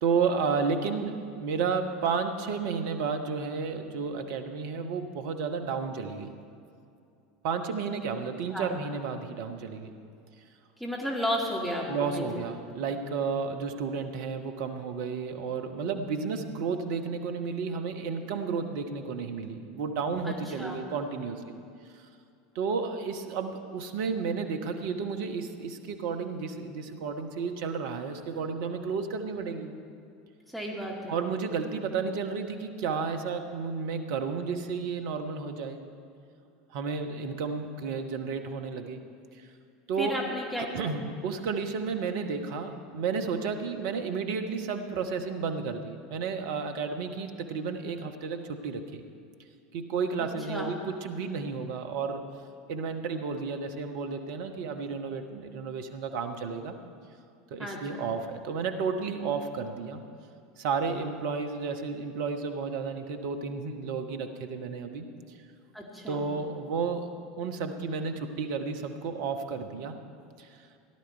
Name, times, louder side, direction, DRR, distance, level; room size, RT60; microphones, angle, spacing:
voice 1, 0.0-6.3 7.4-10.0 11.9-21.6 21.9-22.0 22.5-29.7 31.1-35.8 36.7-39.0 39.4-39.5 39.9-40.2 40.6-49.0 49.7-52.2 52.7-56.8 57.5-60.0 60.6-65.0 66.1-69.9 70.4-70.7, right 5 dB, 55° right, 6 dB, 1.0 m, -32 dB
voice 2, 10.8-12.4 20.2-20.8 30.5-31.2 40.0-41.0 50.2-50.7 57.6-58.0 65.7-66.3, equal, ahead, -3 dB, 2.0 m, -34 dB
17.0 x 11.5 x 4.6 m, 2.5 s
figure-of-eight pair, 75°, 0 cm